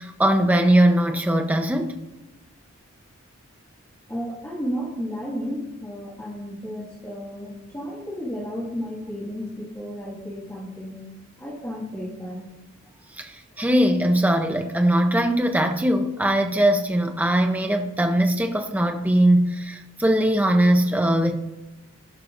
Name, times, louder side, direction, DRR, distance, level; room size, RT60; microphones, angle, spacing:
voice 1, 0.0-1.9 13.2-21.4, right 1 dB, 5° right, 0.5 m, -20 dB
voice 2, 4.1-11.0 11.4-12.4, equal, 10° left, 1.9 m, -33 dB
16.5 x 5.5 x 2.5 m
head